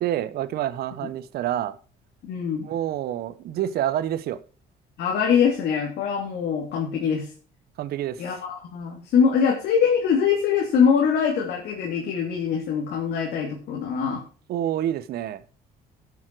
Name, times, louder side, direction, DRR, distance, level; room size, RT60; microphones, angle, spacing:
voice 1, 0.0-1.8 2.6-4.4 7.8-8.2 14.5-15.4, right 11 dB, 70° right, 0.9 m, -27 dB
voice 2, 2.2-2.7 5.0-7.3 8.2-14.2, left 7 dB, 75° left, 2.8 m, -23 dB
12.0 x 7.3 x 4.7 m
cardioid pair, 110°, 17 cm